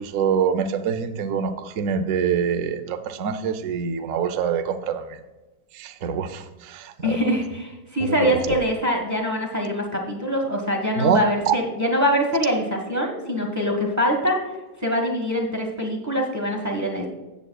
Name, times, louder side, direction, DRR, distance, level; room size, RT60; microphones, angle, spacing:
voice 1, 0.0-5.2 5.7-7.2 8.5-8.6 11.0-11.6, right 7 dB, 65° right, 8 dB, 0.7 m, -25 dB
voice 2, 7.0-14.4 14.8-17.1, equal, 10° right, 1 dB, 1.1 m, -24 dB
14.0 x 8.3 x 2.3 m, 1.2 s
omnidirectional pair, 2.2 m